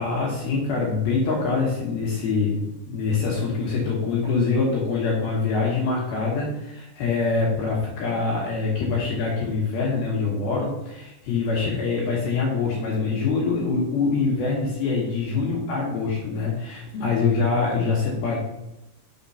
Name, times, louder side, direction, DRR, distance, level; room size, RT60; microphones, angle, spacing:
voice 1, 0.0-2.6 2.9-18.4, left 4 dB, 70° left, -4 dB, 2.4 m, -24 dB
7.2 x 3.7 x 5.5 m, 0.88 s
omnidirectional pair, 5.9 m